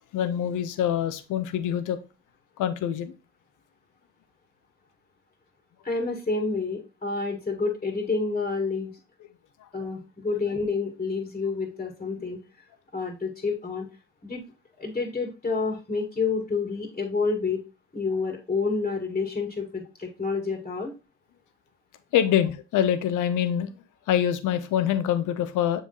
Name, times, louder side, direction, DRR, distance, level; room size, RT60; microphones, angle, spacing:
voice 1, 0.1-2.0 2.6-3.1 12.2-12.3 22.1-23.7 24.1-25.8, left 10 dB, 70° left, 11 dB, 0.9 m, -25 dB
voice 2, 5.8-8.9 9.7-12.4 12.9-13.9 14.2-14.4 14.8-17.6 17.9-20.9, left 4 dB, 20° left, 2 dB, 1.8 m, -29 dB
6.9 x 3.8 x 4.0 m, 0.29 s
supercardioid pair, 60°, 32 cm